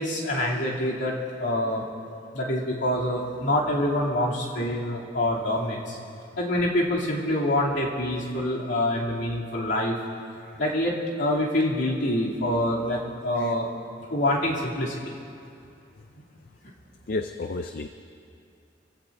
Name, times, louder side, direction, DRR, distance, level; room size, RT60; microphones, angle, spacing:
voice 1, 0.0-1.8 2.3-6.0 6.4-9.9 10.6-13.7 14.1-15.1, left 1 dB, 70° left, -5 dB, 2.9 m, -26 dB
voice 2, 17.1-17.9, left 2 dB, 55° left, 7 dB, 0.5 m, -32 dB
26.5 x 16.0 x 2.7 m, 2.5 s
head